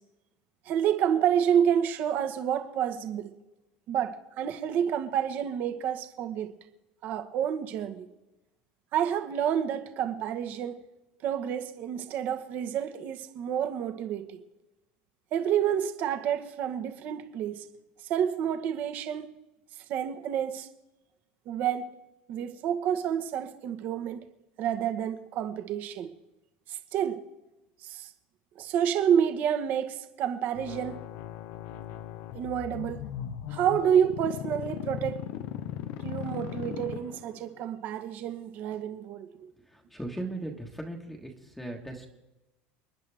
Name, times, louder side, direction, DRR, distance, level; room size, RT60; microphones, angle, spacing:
voice 1, 0.6-3.3 3.9-6.5 7.0-8.1 8.9-10.8 11.2-14.4 15.3-17.6 18.1-19.3 19.9-20.7 21.5-21.9 22.3-24.2 24.6-26.1 26.7-27.2 27.8-28.1 28.6-31.0 32.3-33.0 33.5-35.2 36.0-39.5, right 9 dB, 40° right, 1.3 m, -29 dB
sound 1, 30.5-37.5, left 11 dB, 60° left, 1.0 m, -38 dB
voice 2, 39.4-42.1, right 1 dB, 5° left, 1.4 m, -38 dB
30.0 x 10.5 x 3.5 m
cardioid pair, 165°, 4 cm